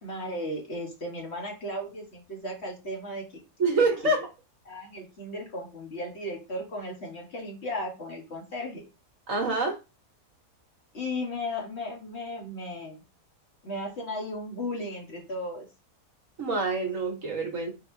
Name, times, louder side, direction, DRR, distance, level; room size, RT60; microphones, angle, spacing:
voice 1, 0.0-3.2 3.7-4.1 4.6-8.8 10.9-13.0 13.6-15.7, left 1 dB, 45° left, 0 dB, 1.4 m, -35 dB
voice 2, 3.6-4.3 9.3-9.7 16.4-17.7, right 3 dB, 55° right, 0 dB, 1.5 m, -26 dB
4.2 x 4.1 x 2.6 m, 0.27 s
omnidirectional pair, 1.7 m